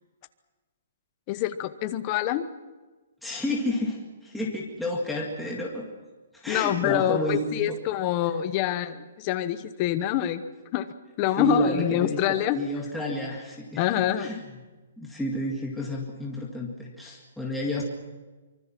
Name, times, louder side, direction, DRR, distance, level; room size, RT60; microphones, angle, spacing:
voice 1, 1.3-2.4 6.5-10.4 10.7-10.9 11.2-12.6 13.8-14.3, left 12 dB, 20° left, 11 dB, 1.0 m, -26 dB
voice 2, 3.2-5.9 6.3-7.4 7.7-7.8 11.4-12.2 12.5-14.5 15.0-17.8, left 1 dB, ahead, -4 dB, 1.9 m, -30 dB
25.0 x 24.5 x 6.0 m, 1.3 s
hypercardioid pair, 175°, 0 cm